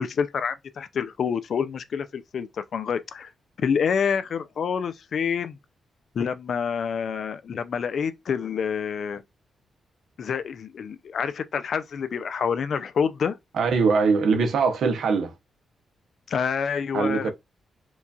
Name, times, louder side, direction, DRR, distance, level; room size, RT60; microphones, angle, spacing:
voice 1, 0.0-3.3 3.6-5.6 6.1-9.2 10.2-13.4 16.3-17.3, left 6 dB, 60° left, 0.4 m, -27 dB
voice 2, 13.5-15.3 16.9-17.3, right 4 dB, 80° right, 0.7 m, -22 dB
4.5 x 2.4 x 2.6 m
wide cardioid pair, 135°, 0 cm